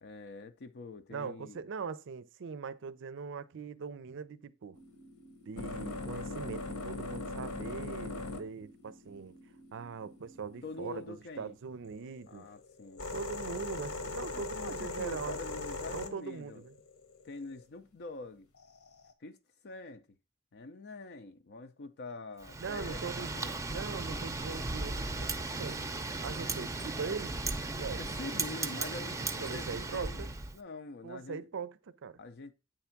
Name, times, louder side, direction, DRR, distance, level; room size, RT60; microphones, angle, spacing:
voice 1, 0.0-1.6 10.6-11.6 12.3-13.0 14.3-16.6 17.2-18.5 19.2-20.1 20.5-23.6 28.0-30.3 30.5-31.5 32.2-32.5, left 3 dB, 50° left, 0.6 m, -45 dB
voice 2, 1.1-4.8 5.4-9.4 9.7-12.5 13.1-15.4 15.9-16.7 22.6-23.4 23.7-25.3 25.6-27.3 27.7-28.0 29.4-30.3 31.0-32.2, right 5 dB, 60° right, 0.5 m, -41 dB
sound 1, 4.7-11.0 11.8-17.6 18.6-19.1, left 2 dB, 75° left, 1.1 m, -41 dB
Wind, 22.4-30.6, right 3 dB, 15° right, 0.6 m, -36 dB
8.8 x 3.5 x 5.8 m
head